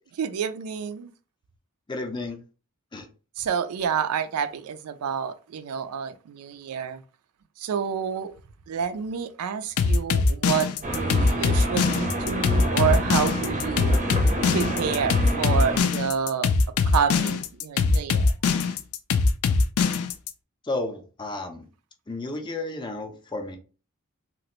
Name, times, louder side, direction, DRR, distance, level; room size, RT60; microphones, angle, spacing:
voice 1, 0.2-1.1 3.4-7.0 7.6-8.3 8.7-14.0 14.5-16.5 16.9-18.3, right 7 dB, 80° right, 0.4 m, -28 dB
voice 2, 1.9-2.4 2.9-3.1 20.6-21.7 22.1-23.6, left 2 dB, 20° left, 0.5 m, -32 dB
sound 1, 9.8-20.3, left 4 dB, 80° left, 0.4 m, -22 dB
sound 2, 10.8-15.8, right 1 dB, 35° right, 0.5 m, -29 dB
2.9 x 2.4 x 2.9 m
head